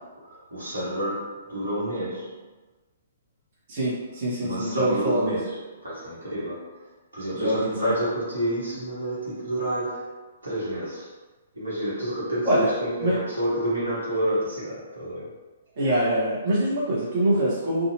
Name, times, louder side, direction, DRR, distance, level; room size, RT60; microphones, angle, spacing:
voice 1, 0.2-2.4 4.4-11.1 11.5-15.3, right 1 dB, 90° right, -8 dB, 1.2 m, -29 dB
voice 2, 3.7-5.4 7.3-7.9 12.5-12.7 13.0-13.1 15.8-17.9, right 1 dB, 50° right, -8 dB, 1.1 m, -24 dB
2.7 x 2.4 x 2.8 m, 1.2 s
hypercardioid pair, 130°, 0 cm